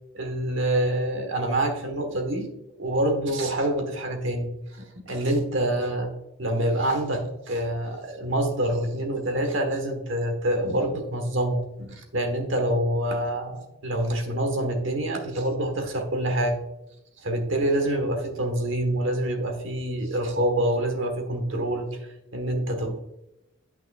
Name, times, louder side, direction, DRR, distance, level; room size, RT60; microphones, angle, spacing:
voice 1, 0.1-2.5 2.8-6.1 6.4-16.6 17.2-23.0, right 1 dB, 60° right, 4 dB, 1.4 m, -26 dB
8.8 x 6.1 x 2.4 m, 0.89 s
head